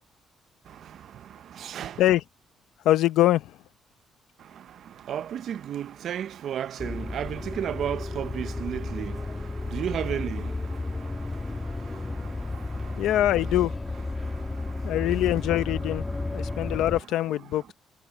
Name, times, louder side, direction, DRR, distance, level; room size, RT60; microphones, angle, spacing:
voice 1, 1.5-2.0 5.1-13.0 14.2-14.3 16.1-16.3, right 9 dB, 70° right, 0.7 m, -34 dB
voice 2, 2.8-3.6 13.0-13.7 14.8-16.1 16.3-17.7, left 14 dB, 85° left, 0.8 m, -23 dB
sound 1, 6.8-17.0, left 2 dB, 20° left, 2.2 m, -33 dB
cardioid pair, 90°, 0 cm